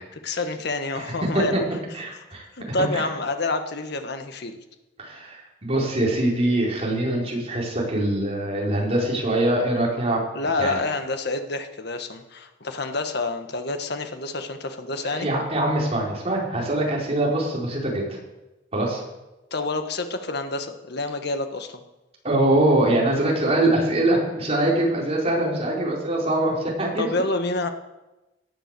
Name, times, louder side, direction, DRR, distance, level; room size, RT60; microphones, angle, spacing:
voice 1, 0.2-1.6 2.6-4.6 10.3-15.3 19.5-21.8 27.0-27.7, left 2 dB, 65° left, 7 dB, 1.5 m, -28 dB
voice 2, 1.9-3.0 5.0-10.2 10.6-10.8 15.0-18.0 18.7-19.0 22.2-27.1, right 1 dB, 35° right, -3 dB, 4.8 m, -23 dB
17.0 x 11.0 x 6.9 m, 1.0 s
head